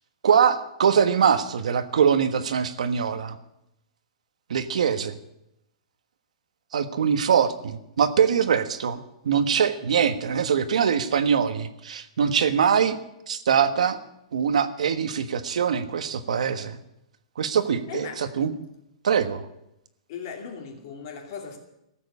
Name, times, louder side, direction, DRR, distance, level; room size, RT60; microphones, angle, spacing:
voice 1, 0.2-3.4 4.5-5.2 6.7-13.0 13.3-14.0 14.3-16.8 17.4-18.5 19.0-19.4, right 7 dB, 85° right, 10 dB, 1.4 m, -23 dB
voice 2, 17.9-18.4 20.1-21.6, left 6 dB, 35° left, 3 dB, 2.6 m, -37 dB
15.0 x 7.9 x 9.7 m, 0.83 s
hypercardioid pair, 175°, 4 cm